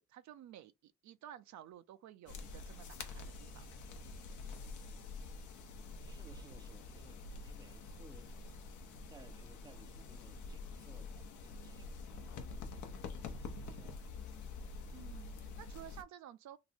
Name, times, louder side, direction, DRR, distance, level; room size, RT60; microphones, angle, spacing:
voice 1, 0.0-3.8 14.9-16.6, right 11 dB, 70° right, 0.5 m, -54 dB
sound 1, 2.3-16.0, left 3 dB, 75° left, 0.8 m, -47 dB
voice 2, 4.7-5.2 5.7-8.3 9.1-12.1 12.4-14.0, right 4 dB, 15° right, 0.4 m, -62 dB
3.0 x 2.2 x 4.1 m
cardioid pair, 90°, 30 cm